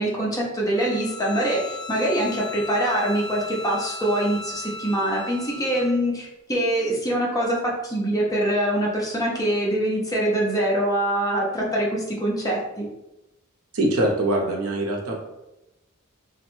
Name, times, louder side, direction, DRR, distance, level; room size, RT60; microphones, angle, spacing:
voice 1, 0.0-12.9, right 1 dB, 15° left, -3 dB, 0.6 m, -24 dB
Bowed string instrument, 0.7-6.0, left 1 dB, 45° left, 0.9 m, -37 dB
voice 2, 13.7-15.2, right 1 dB, 70° right, 0 dB, 0.6 m, -23 dB
3.0 x 2.1 x 3.0 m, 0.96 s
head